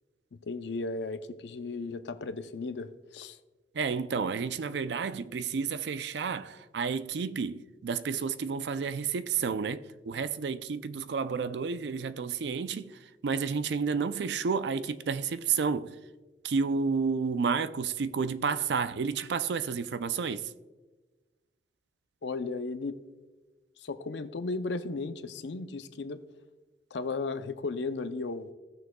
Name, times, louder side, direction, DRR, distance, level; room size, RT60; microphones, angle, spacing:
voice 1, 0.4-3.4 22.2-23.0 23.8-26.2 26.9-28.5, left 3 dB, 85° left, 0.5 m, -35 dB
voice 2, 3.7-16.0 16.4-20.5, right 5 dB, 80° right, 0.4 m, -31 dB
16.5 x 6.4 x 2.2 m
head